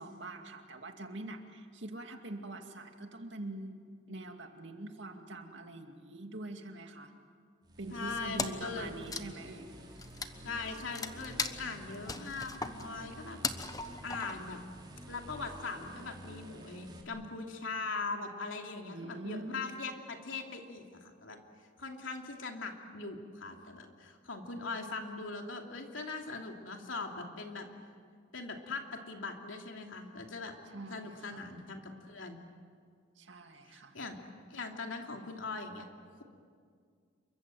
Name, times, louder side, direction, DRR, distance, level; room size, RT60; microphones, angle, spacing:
voice 1, 0.0-3.8 4.1-7.1 7.8-9.7 18.9-19.7 30.7-31.6 33.2-34.0, right 2 dB, 65° right, 4 dB, 2.4 m, -44 dB
sound 1, 7.6-17.0, right 1 dB, 25° right, 3.4 m, -50 dB
voice 2, 7.9-8.9 10.4-13.4 13.7-14.6 15.1-21.4 21.8-27.7 28.3-30.5 30.9-32.4 33.7-34.2 34.5-35.9, left 3 dB, 80° left, 2 dB, 2.9 m, -41 dB
Wood, 8.4-8.7 9.0-14.6, left 4 dB, 20° left, 1.1 m, -38 dB
28.5 x 24.0 x 7.8 m, 2.1 s
head